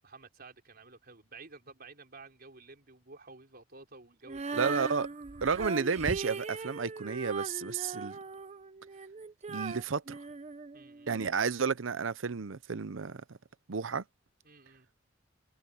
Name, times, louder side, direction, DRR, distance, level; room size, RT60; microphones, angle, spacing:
voice 1, 0.0-5.0 10.7-11.2 14.4-14.9, right 3 dB, 55° right, 4.7 m, -52 dB
Female singing, 4.3-11.3, right 4 dB, 35° right, 0.8 m, -39 dB
voice 2, 4.5-5.1 5.4-8.2 9.5-10.2 11.1-13.4 13.7-14.0, right 5 dB, 85° right, 0.7 m, -32 dB
head